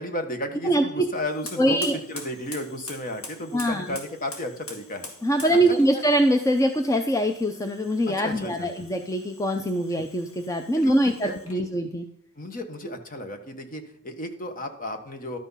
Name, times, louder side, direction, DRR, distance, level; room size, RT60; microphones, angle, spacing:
voice 1, 0.0-5.1 5.5-6.0 8.1-8.8 10.7-11.4 12.4-15.4, left 1 dB, 40° left, 7 dB, 1.2 m, -34 dB
voice 2, 0.6-1.0 1.6-1.9 3.5-3.9 5.2-12.0, right 1 dB, 15° left, 5 dB, 0.6 m, -23 dB
Fire, 1.1-11.7, left 2 dB, 65° left, 2.6 m, -45 dB
12.0 x 6.1 x 5.6 m, 0.71 s
head